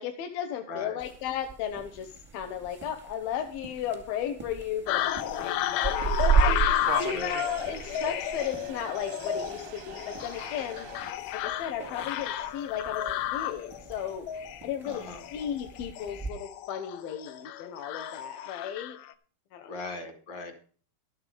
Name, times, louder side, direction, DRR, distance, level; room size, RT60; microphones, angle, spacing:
voice 1, 0.0-10.9 11.3-13.1 13.3-19.0 19.5-20.0, left 9 dB, 75° left, 5 dB, 2.7 m, -35 dB
sound 1, 1.0-16.3, right 6 dB, 5° right, 0.9 m, -35 dB
sound 2, 4.9-19.1, left 11 dB, 90° left, 2.7 m, -33 dB
voice 2, 5.4-5.8 7.0-7.4 14.8-15.2 19.7-20.6, left 3 dB, 40° left, 6 dB, 1.7 m, -40 dB
sound 3, 5.8-11.1, right 13 dB, 80° right, 1.8 m, -43 dB
12.5 x 8.7 x 5.0 m, 0.41 s
omnidirectional pair, 4.5 m